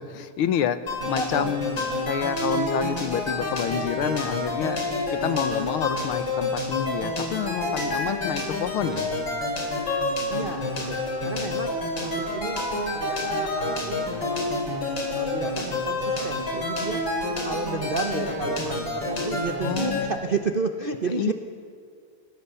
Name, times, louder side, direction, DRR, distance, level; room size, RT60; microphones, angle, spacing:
voice 1, 0.1-0.8 1.1-4.8 5.1-9.1 19.6-20.1 21.2-21.3, left 9 dB, 85° left, 12 dB, 1.8 m, -28 dB
sound 1, 0.9-20.1, left 2 dB, 65° left, 4.5 m, -28 dB
voice 2, 1.1-1.6 10.3-12.6 12.9-14.4 15.1-17.1 17.4-21.3, right 4 dB, 50° right, 4 dB, 0.6 m, -31 dB
29.5 x 16.5 x 6.9 m, 2.1 s
omnidirectional pair, 2.3 m